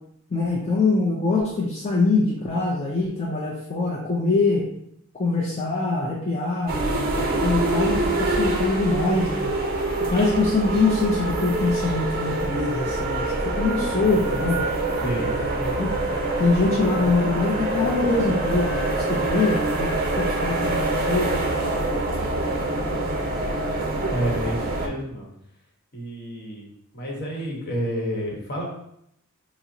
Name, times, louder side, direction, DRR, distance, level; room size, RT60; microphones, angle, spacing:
voice 1, 0.3-4.6 5.2-9.6 10.1-14.6 15.2-15.9 16.4-21.6, left 3 dB, 30° left, -4 dB, 0.4 m, -24 dB
sound 1, 6.7-24.9, right 2 dB, 40° right, 0.6 m, -25 dB
voice 2, 15.0-15.3 24.1-25.3 25.9-28.7, equal, 45° left, -2 dB, 1.0 m, -29 dB
5.3 x 2.0 x 2.6 m, 0.73 s
head